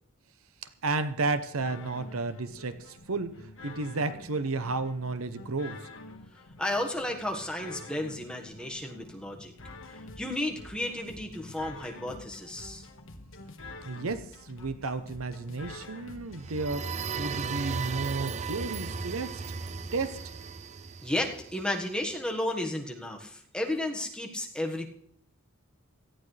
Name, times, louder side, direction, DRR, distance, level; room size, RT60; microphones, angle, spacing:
voice 1, 0.8-5.9 13.8-16.9 17.2-19.4 19.9-20.2, right 3 dB, 70° right, 11 dB, 0.8 m, -32 dB
sound 1, 1.6-17.6, left 2 dB, 65° left, 1.5 m, -48 dB
voice 2, 6.6-9.5 10.2-12.8 21.0-24.9, left 1 dB, 5° left, 1 dB, 1.5 m, -33 dB
sound 2, 16.3-22.0, right 5 dB, 35° right, 0.5 m, -36 dB
18.0 x 14.0 x 3.3 m, 0.69 s
head